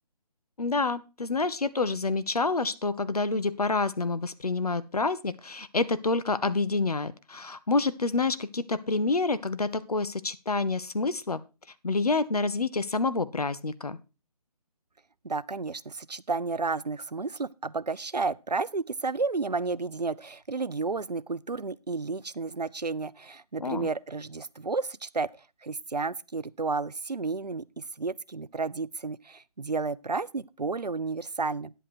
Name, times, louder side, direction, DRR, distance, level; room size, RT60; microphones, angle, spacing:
voice 1, 0.6-11.4 11.8-14.0 23.6-23.9, left 3 dB, 70° left, 0.8 m, -28 dB
voice 2, 15.2-31.7, right 4 dB, 85° right, 0.5 m, -32 dB
9.9 x 8.1 x 4.4 m
figure-of-eight pair, 150°, 20 cm